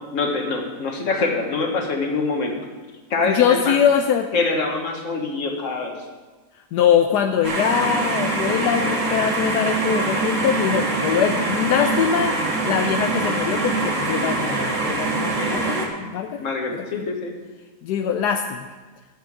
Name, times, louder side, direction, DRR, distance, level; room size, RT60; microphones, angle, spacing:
voice 1, 0.1-2.5 3.1-3.8 4.3-5.9 11.8-11.9 12.6-12.9 15.3-15.7 16.4-17.3, left 3 dB, 50° left, 2 dB, 1.6 m, -25 dB
voice 2, 3.2-4.3 6.7-16.4 16.7-17.1 17.8-18.7, left 8 dB, 80° left, 6 dB, 1.2 m, -22 dB
sound 1, 7.4-15.9, right 3 dB, 60° right, 1.9 m, -24 dB
8.5 x 6.7 x 8.0 m, 1.3 s
omnidirectional pair, 1.8 m